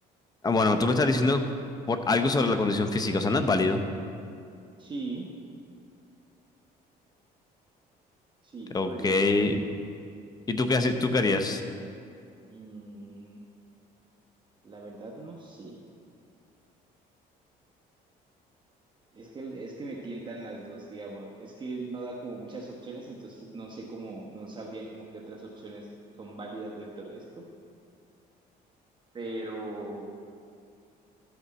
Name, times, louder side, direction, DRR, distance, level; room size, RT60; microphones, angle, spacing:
voice 1, 0.4-1.4 1.9-3.8 8.7-9.6 10.5-11.6, left 3 dB, 25° left, 7 dB, 0.7 m, -24 dB
voice 2, 4.8-5.3 8.4-9.3 12.5-13.4 14.6-15.8 19.1-25.9 26.2-27.4 29.1-30.1, right 2 dB, 30° right, -2 dB, 1.1 m, -40 dB
12.5 x 8.2 x 4.2 m, 2.4 s
cardioid pair, 110°, 17 cm